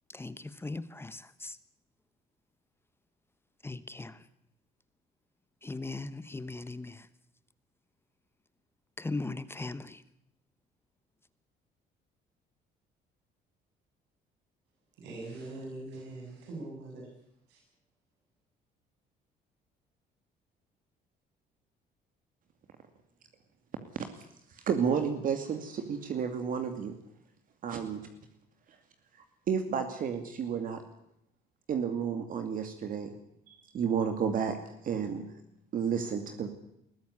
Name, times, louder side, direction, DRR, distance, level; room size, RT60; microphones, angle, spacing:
voice 1, 0.1-1.6 3.6-4.3 5.6-7.1 9.0-10.0, left 3 dB, 15° left, 1.1 m, -39 dB
voice 2, 15.0-17.1 17.5-17.6, right 2 dB, 85° right, 7.6 m, -42 dB
voice 3, 24.7-26.9 27.6-28.1 29.5-30.8 31.7-33.1 33.5-34.6 34.8-35.2 35.7-36.5, right 7 dB, 55° right, 2.5 m, -31 dB
21.0 x 15.0 x 9.8 m
cardioid pair, 110°, 17 cm